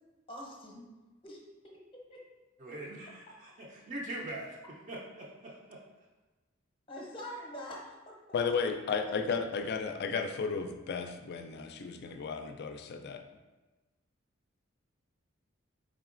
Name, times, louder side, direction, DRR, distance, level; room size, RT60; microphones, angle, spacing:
voice 1, 0.3-0.9 1.2-1.4 2.1-2.2 6.9-8.2, equal, 25° left, -2 dB, 0.7 m, -44 dB
voice 2, 2.6-4.6 4.9-5.8, right 1 dB, 40° right, -4 dB, 0.5 m, -42 dB
voice 3, 8.3-13.2, left 5 dB, 55° left, 6 dB, 0.4 m, -34 dB
4.0 x 3.6 x 2.5 m, 1.2 s
head